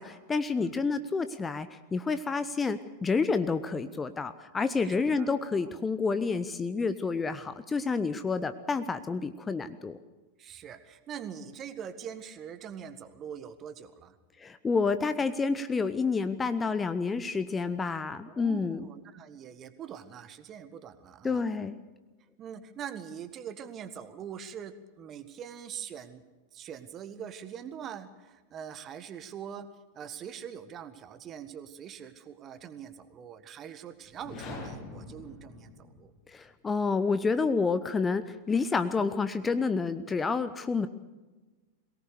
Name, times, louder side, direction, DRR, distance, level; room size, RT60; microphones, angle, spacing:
voice 1, 0.0-10.0 14.4-18.8 21.2-21.8 36.3-40.9, left 4 dB, 15° left, 12 dB, 0.8 m, -29 dB
voice 2, 4.8-5.6 10.4-14.2 18.3-21.5 22.4-26.2 26.5-29.7 29.9-36.1, right 8 dB, 30° right, 12 dB, 1.5 m, -43 dB
sound 1, 34.1-36.2, left 3 dB, 40° left, 7.5 m, -43 dB
22.5 x 18.5 x 6.7 m, 1.2 s
figure-of-eight pair, 90°, 0 cm